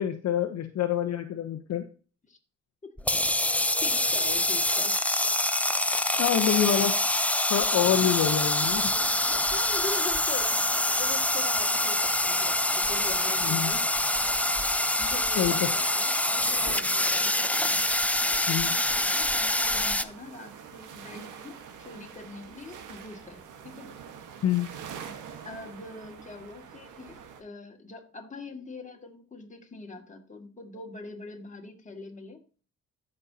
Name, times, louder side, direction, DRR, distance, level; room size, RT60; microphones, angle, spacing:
voice 1, 0.0-1.8 6.2-6.9 7.5-8.9 13.4-13.7 15.4-15.7 18.5-18.7 24.4-24.7, left 9 dB, 60° left, 5 dB, 0.9 m, -26 dB
sound 1, 3.0-20.0, left 1 dB, 5° left, 0.5 m, -26 dB
voice 2, 3.8-4.9 9.5-13.9 15.0-17.6 18.2-23.9 25.1-32.4, left 3 dB, 25° left, 2 dB, 2.2 m, -43 dB
sound 2, 8.1-27.4, right 7 dB, 85° right, 1.5 m, -45 dB
14.0 x 5.4 x 2.8 m, 0.37 s
cardioid pair, 90°, 30 cm